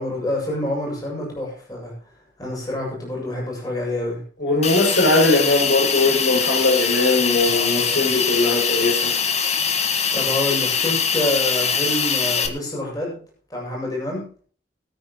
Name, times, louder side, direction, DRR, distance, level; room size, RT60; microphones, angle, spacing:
voice 1, 0.0-1.9 2.4-4.2 7.5-8.2 10.1-13.2 13.5-14.2, left 1 dB, 20° left, 7.4 m, -27 dB
voice 2, 4.4-9.1, left 2 dB, 70° left, 7.4 m, -20 dB
Hiss, 4.6-12.5, left 6 dB, 40° left, 1.8 m, -22 dB
22.0 x 9.7 x 3.2 m
head